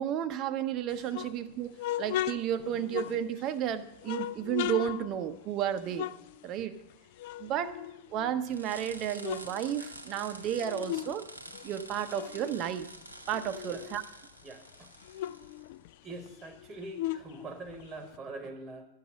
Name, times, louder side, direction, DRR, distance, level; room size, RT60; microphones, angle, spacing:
voice 1, 0.0-1.7 2.0-6.1 6.4-6.7 7.4-7.8 8.1-11.2 11.6-12.9 13.3-14.0, right 10 dB, 35° right, 11 dB, 0.7 m, -32 dB
sound 1, 0.9-3.6 4.0-6.9 7.2-8.5 8.9-11.2 11.5-14.0 14.4-14.5 14.7-18.2, left 13 dB, 50° left, 0.3 m, -38 dB
sound 2, 8.5-15.7, right 1 dB, 80° right, 1.0 m, -48 dB
voice 2, 14.4-14.9 16.0-18.8, right 2 dB, 20° right, 8 dB, 1.1 m, -43 dB
12.0 x 8.0 x 6.1 m, 0.89 s
figure-of-eight pair, 90°, 0 cm